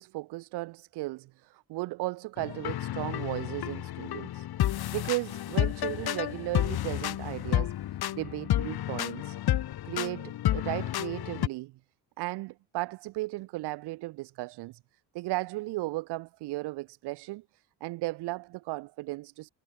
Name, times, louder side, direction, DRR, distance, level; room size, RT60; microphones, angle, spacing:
voice 1, 0.0-4.5 4.9-7.7 8.1-9.4 9.8-11.7 12.2-14.8 15.1-17.4 17.8-19.5, right 20 dB, 70° right, 0.6 m, -35 dB
sound 1, 2.4-11.5, left 13 dB, 65° left, 1.5 m, -31 dB
supercardioid pair, 70°, 41 cm